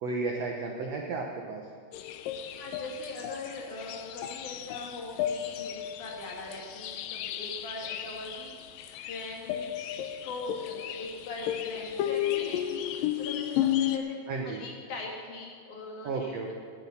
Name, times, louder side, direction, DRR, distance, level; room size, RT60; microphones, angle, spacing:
voice 1, 0.0-1.6 14.3-14.6 16.0-16.5, right 3 dB, 80° right, 1 dB, 1.4 m, -33 dB
sound 1, 1.9-14.0, left 11 dB, 75° left, 2.1 m, -33 dB
voice 2, 2.6-8.6 9.0-14.2 14.4-16.5, left 2 dB, 55° left, -1 dB, 3.1 m, -41 dB
17.5 x 8.9 x 5.8 m, 2.1 s
omnidirectional pair, 4.5 m